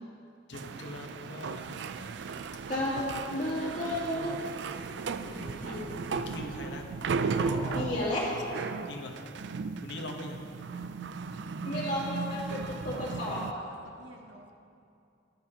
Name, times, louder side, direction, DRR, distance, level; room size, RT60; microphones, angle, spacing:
voice 1, 0.5-2.4 5.3-6.8 8.9-9.1 9.8-10.4, left 2 dB, 65° left, 2 dB, 1.0 m, -43 dB
sound 1, 0.5-13.5, right 4 dB, 65° right, 0.4 m, -36 dB
voice 2, 2.7-3.0 3.3-4.8 5.2-5.8 7.7-8.4 11.6-13.4, left 1 dB, 40° left, -6 dB, 2.5 m, -33 dB
sound 2, 6.6-9.6, left 1 dB, 15° left, 2.4 m, -44 dB
voice 3, 12.6-14.5, right 1 dB, 85° right, 2 dB, 0.7 m, -49 dB
13.5 x 10.5 x 2.8 m, 2.5 s
head